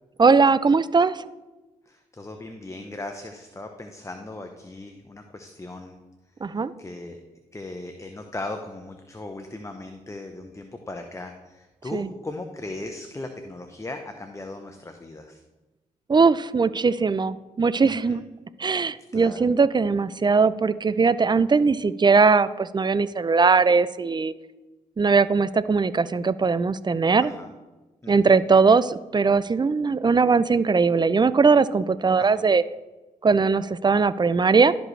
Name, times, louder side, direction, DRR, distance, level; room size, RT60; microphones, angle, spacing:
voice 1, 0.2-1.2 6.4-6.7 11.9-12.1 16.1-18.2 18.6-24.3 25.0-27.3 28.1-32.6 33.2-34.7, right 4 dB, 30° right, 16 dB, 0.5 m, -20 dB
voice 2, 1.9-6.0 6.5-7.2 7.5-15.4 17.9-18.3 19.1-19.4 27.2-27.5 28.0-28.4 32.2-32.5, left 2 dB, 20° left, 5 dB, 0.8 m, -38 dB
12.5 x 5.1 x 3.3 m, 1.1 s
supercardioid pair, 45°, 15 cm